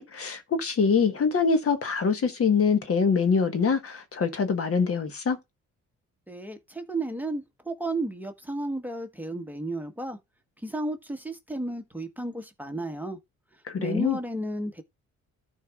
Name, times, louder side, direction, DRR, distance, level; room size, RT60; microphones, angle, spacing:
voice 1, 0.0-5.4 13.7-14.2, left 5 dB, 50° left, 1.4 m, -24 dB
voice 2, 6.3-10.2 10.6-13.2 13.8-14.8, right 2 dB, 5° right, 1.3 m, -33 dB
13.5 x 4.7 x 2.4 m
cardioid pair, 90°, 30 cm